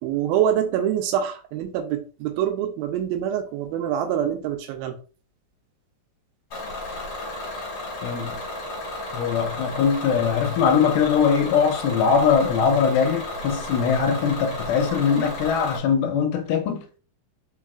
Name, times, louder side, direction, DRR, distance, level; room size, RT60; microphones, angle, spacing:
voice 1, 0.0-5.0, right 10 dB, 80° right, 2.3 m, -25 dB
Bus / Engine, 6.5-15.8, left 1 dB, 50° left, 1.9 m, -33 dB
voice 2, 8.0-8.4 9.1-17.0, left 6 dB, 85° left, 2.5 m, -21 dB
4.7 x 4.6 x 2.3 m
omnidirectional pair, 4.5 m